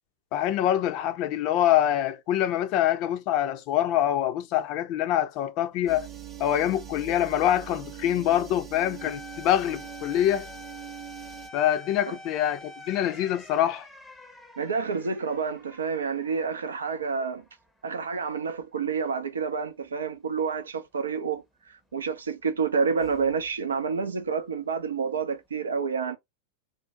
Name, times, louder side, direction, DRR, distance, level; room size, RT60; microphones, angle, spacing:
voice 1, 0.3-6.1 6.4-10.5 11.5-13.9, left 11 dB, 40° left, 0.5 m, -25 dB
sound 1, 5.9-11.5, right 11 dB, 30° right, 0.9 m, -42 dB
sound 2, 9.0-17.6 18.0-18.1 23.0-23.5, left 1 dB, ahead, 0.7 m, -47 dB
voice 2, 14.6-17.4 17.8-26.2, right 5 dB, 70° right, 0.5 m, -29 dB
2.6 x 2.2 x 3.8 m
figure-of-eight pair, 90°, 0 cm